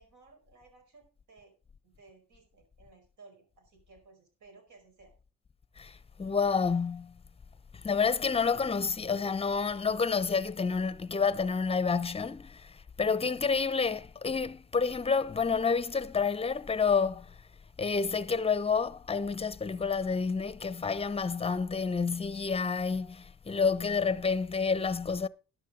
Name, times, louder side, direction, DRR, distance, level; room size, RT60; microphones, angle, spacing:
voice 1, 0.0-1.5 1.8-5.1, right 3 dB, 75° right, 5.1 m, -58 dB
voice 2, 5.8-7.2 7.7-17.3 17.8-25.3, left 5 dB, 20° left, 0.7 m, -29 dB
12.5 x 10.5 x 3.8 m
cardioid pair, 90°, 30 cm